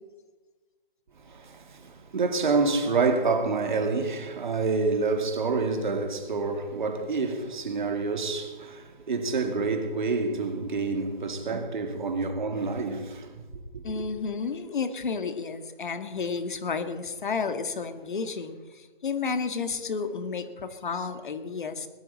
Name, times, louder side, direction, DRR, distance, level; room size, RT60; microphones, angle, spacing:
voice 1, 1.2-13.4 13.7-14.1, right 4 dB, 50° right, 2.4 m, -28 dB
voice 2, 13.8-21.9, left 5 dB, 55° left, 1.8 m, -31 dB
20.5 x 13.0 x 4.2 m
hypercardioid pair, 160°, 30 cm